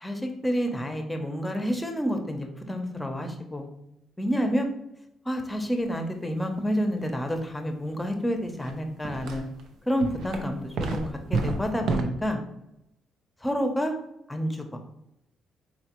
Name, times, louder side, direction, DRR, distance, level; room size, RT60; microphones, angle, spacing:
voice 1, 0.0-3.7 4.2-4.7 5.2-9.5 9.9-11.0 11.3-12.4 13.4-13.9 14.3-14.6, equal, 10° left, 4 dB, 0.7 m, -29 dB
sound 1, 8.6-8.7 9.0-9.6 10.0-12.0, right 3 dB, 75° right, 0.6 m, -29 dB
4.3 x 3.2 x 3.0 m, 0.85 s
cardioid pair, 90°, 0 cm